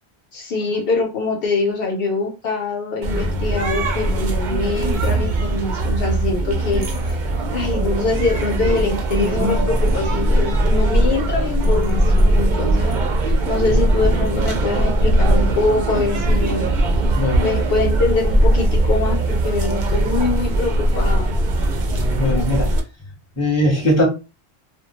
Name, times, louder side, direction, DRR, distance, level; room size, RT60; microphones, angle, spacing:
voice 1, 0.3-7.2 7.5-16.7 17.4-21.5, left 3 dB, 70° left, 0.8 m, -24 dB
sound 1, 3.0-22.8, right 1 dB, 55° right, 0.6 m, -19 dB
voice 2, 17.2-17.5 22.2-22.7 23.4-24.1, left 1 dB, 15° left, 0.8 m, -19 dB
2.3 x 2.1 x 2.8 m
omnidirectional pair, 1.1 m